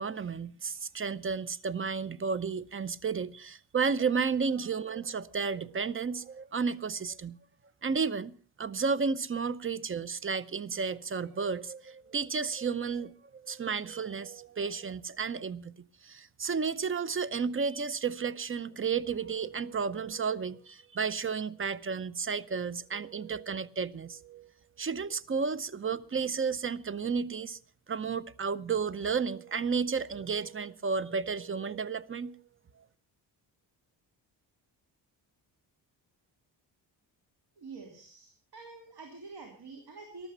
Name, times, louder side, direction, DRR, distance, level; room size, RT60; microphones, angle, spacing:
voice 1, 0.0-7.4 7.8-24.5 24.8-27.6 27.9-32.4, right 5 dB, 30° right, 0.7 m, -32 dB
voice 2, 37.6-40.3, right 3 dB, 65° right, 3.2 m, -47 dB
14.5 x 12.0 x 5.6 m
cardioid pair, 95°, 42 cm